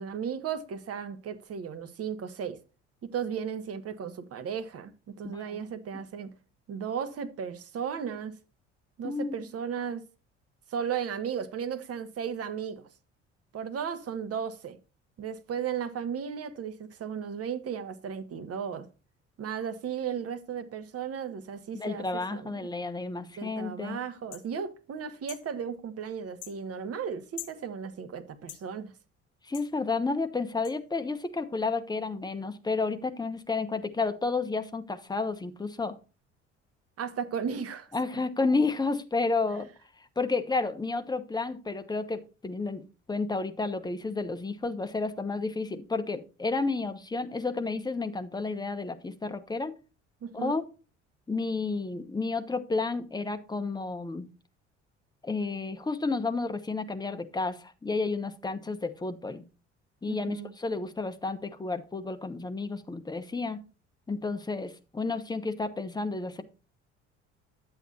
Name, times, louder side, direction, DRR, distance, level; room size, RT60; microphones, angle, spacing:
voice 1, 0.0-2.6 3.1-6.3 6.7-8.4 9.0-10.0 10.7-12.9 13.5-14.8 15.2-18.9 19.4-22.1 22.3-22.7 23.4-28.9 37.0-37.9 50.2-50.6 60.1-60.5, right 7 dB, 40° right, 1.2 m, -35 dB
voice 2, 5.2-5.6 9.0-9.5 21.7-24.0 29.5-36.0 37.9-39.7 40.2-49.7 50.3-50.6 51.3-54.3 55.2-59.5 60.0-63.6 64.1-66.4, left 3 dB, 10° left, 1.1 m, -31 dB
sound 1, 24.3-24.5 25.3-25.5 26.4-26.6 27.4-27.6 28.5-28.7 29.5-29.7 30.6-30.8, left 14 dB, 55° left, 0.9 m, -42 dB
11.0 x 8.2 x 2.8 m
figure-of-eight pair, 55°, 36 cm